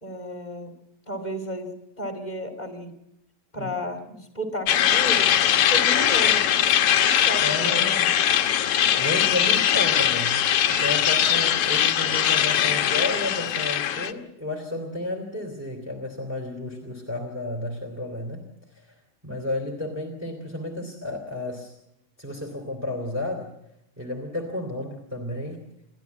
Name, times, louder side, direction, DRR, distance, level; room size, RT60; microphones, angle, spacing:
voice 1, 0.0-0.7 1.1-2.9 3.5-5.3 5.7-6.5 7.0-7.9, equal, 15° left, 6 dB, 2.4 m, -33 dB
sound 1, 4.7-14.1, left 10 dB, 65° left, 1.7 m, -21 dB
voice 2, 7.4-8.2 9.0-18.4 18.7-18.9 19.2-21.8 22.2-23.5 24.0-25.6, left 2 dB, 5° right, 5 dB, 2.8 m, -32 dB
29.0 x 12.5 x 8.4 m, 0.82 s
omnidirectional pair, 3.4 m